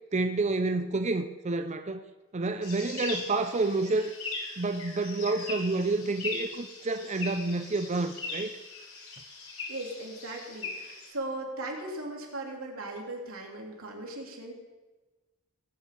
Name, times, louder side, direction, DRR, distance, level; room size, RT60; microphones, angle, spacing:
voice 1, 0.1-2.0 2.3-4.1 4.6-8.5, right 3 dB, 35° right, 0.6 m, -29 dB
sound 1, 2.6-11.1, left 3 dB, 85° left, 3.6 m, -40 dB
voice 2, 9.7-14.5, right 2 dB, 80° right, 3.2 m, -38 dB
18.5 x 9.1 x 5.4 m
head